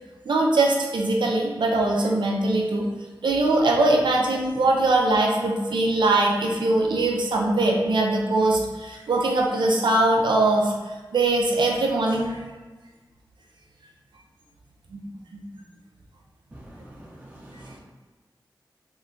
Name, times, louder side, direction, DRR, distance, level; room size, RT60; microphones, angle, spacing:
voice 1, 0.3-2.9 3.2-10.7 11.1-12.4 14.9-15.0 15.3-15.4, right 2 dB, 75° right, -1 dB, 0.4 m, -21 dB
voice 2, 16.5-17.1 17.4-17.8, right 1 dB, 20° right, -4 dB, 0.5 m, -45 dB
2.2 x 2.2 x 3.7 m, 1.3 s
cardioid pair, 40°, 8 cm